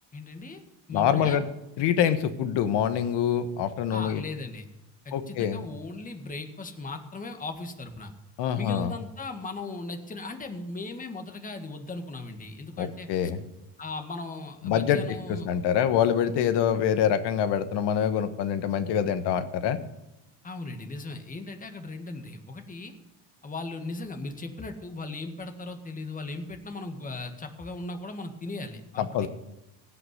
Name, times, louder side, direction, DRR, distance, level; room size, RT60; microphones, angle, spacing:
voice 1, 0.1-0.6 0.9-1.4 3.9-4.6 5.1-8.1 8.6-13.1 13.8-15.5 20.4-22.9 23.4-29.3, left 3 dB, 20° left, 5 dB, 1.8 m, -37 dB
voice 2, 0.9-1.4 1.8-4.2 5.1-5.6 8.4-8.9 12.8-13.4 14.6-15.0 15.4-19.8 29.0-29.3, left 9 dB, 60° left, 10 dB, 1.4 m, -25 dB
16.5 x 6.0 x 9.6 m, 0.94 s
supercardioid pair, 110°, 45 cm